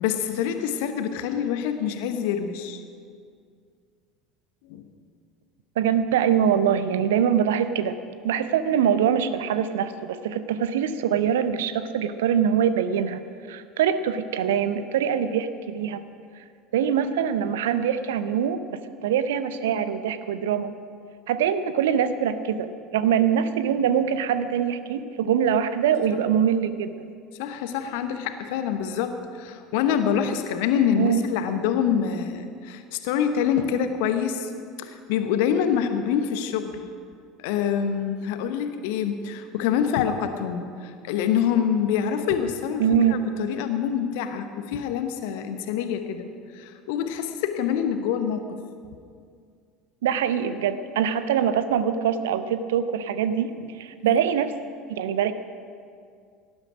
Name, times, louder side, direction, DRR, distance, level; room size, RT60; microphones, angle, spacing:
voice 1, 0.0-2.8 4.7-4.9 26.1-26.2 27.4-34.5 34.8-36.8 37.4-48.6 53.6-53.7 54.0-54.2, left 8 dB, 60° left, 8 dB, 1.1 m, -26 dB
voice 2, 5.8-8.0 8.2-13.2 13.5-16.0 16.7-20.7 21.3-27.1 31.0-31.2 42.8-43.2 50.0-54.5 54.9-55.3, right 8 dB, 65° right, 12 dB, 0.7 m, -23 dB
18.0 x 12.0 x 5.0 m, 2.2 s
figure-of-eight pair, 65°, 0 cm